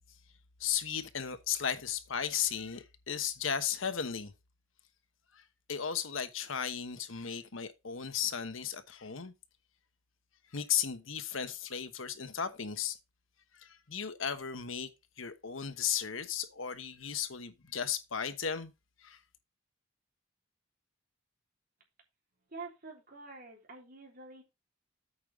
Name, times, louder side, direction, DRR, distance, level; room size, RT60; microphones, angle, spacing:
voice 1, 0.6-4.3 5.3-5.4 5.7-9.3 10.5-13.0 13.5-14.9 15.2-18.7 19.0-19.2, left 8 dB, 85° left, 1.1 m, -35 dB
voice 2, 22.5-24.4, right 3 dB, 45° right, 3.4 m, -47 dB
8.6 x 5.5 x 4.8 m
head